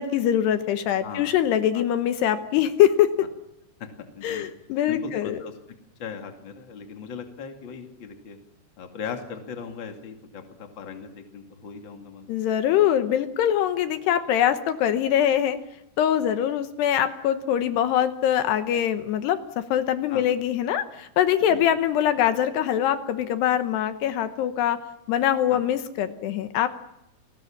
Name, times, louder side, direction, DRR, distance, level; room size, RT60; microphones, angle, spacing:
voice 1, 0.0-3.3 4.2-5.4 12.3-15.6 16.0-24.8 25.1-26.7, left 10 dB, 75° left, 9 dB, 3.0 m, -23 dB
voice 2, 1.0-1.3 1.7-1.8 3.8-4.5 4.9-5.5 6.0-8.4 8.8-12.3 20.1-20.2 21.5-21.6 25.5-25.6, left 6 dB, 35° left, 4 dB, 2.4 m, -38 dB
30.0 x 20.5 x 7.3 m, 0.89 s
omnidirectional pair, 5.0 m